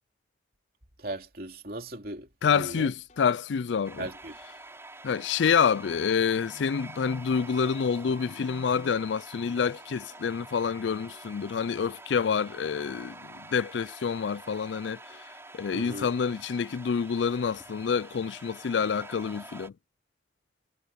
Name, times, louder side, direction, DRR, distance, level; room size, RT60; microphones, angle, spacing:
voice 1, 1.0-2.9 4.0-4.3 15.7-16.1, right 1 dB, 55° right, 3.0 m, -38 dB
voice 2, 2.4-4.1 5.0-19.7, left 6 dB, 85° left, 0.4 m, -28 dB
sound 1, 3.1-3.6 4.1-4.6 5.1-5.6 6.1-6.6 7.1-7.6 8.1-8.6 9.1-9.6 10.1-10.6 11.1-11.6 12.1-12.6 13.1-13.6 14.1-14.6 15.1-15.6 16.1-16.6 17.1-17.6 18.1-18.6, left 3 dB, 40° left, 8.0 m, -61 dB
sound 2, 3.8-19.7, right 2 dB, 15° right, 4.5 m, -47 dB
head